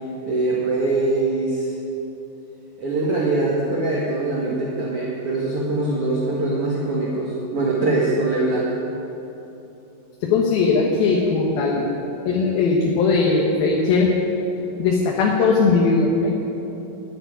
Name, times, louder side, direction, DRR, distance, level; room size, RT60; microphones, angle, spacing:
voice 1, 0.2-1.7 2.8-8.7, right 2 dB, 45° right, -5 dB, 2.3 m, -22 dB
voice 2, 10.2-11.9 12.3-14.1 14.8-16.3, left 4 dB, 85° left, -2 dB, 3.2 m, -19 dB
14.0 x 9.0 x 9.6 m, 3.0 s
omnidirectional pair, 4.2 m